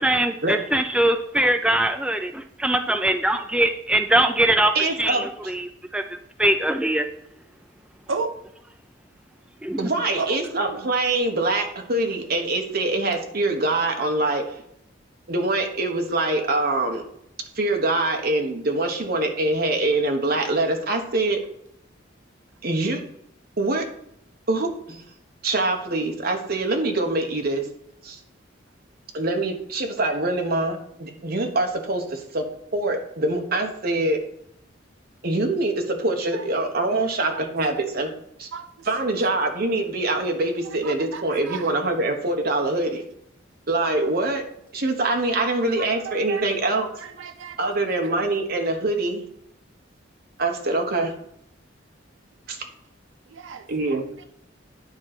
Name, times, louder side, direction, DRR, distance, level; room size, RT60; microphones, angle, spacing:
voice 1, 0.0-2.3 2.6-4.7 5.0-5.2 5.9-6.0 6.4-7.0 9.6-9.8, right 1 dB, 5° right, 0.3 m, -21 dB
voice 2, 4.7-5.6 9.8-14.6 15.3-17.0 17.5-21.4 22.6-23.0 23.6-23.9 24.5-25.0 25.4-27.7 28.0-28.2 29.1-32.5 32.7-34.2 35.2-38.1 38.4-38.5 38.8-43.0 43.7-44.4 44.7-46.9 47.6-49.2 50.4-51.1 52.5-52.6 53.7-54.1, right 2 dB, 50° right, 1.2 m, -24 dB
voice 3, 10.2-10.8 38.5-38.7 40.8-41.6 45.8-46.4 47.2-47.7 53.3-53.6, right 4 dB, 85° right, 0.7 m, -32 dB
9.4 x 3.8 x 5.9 m
head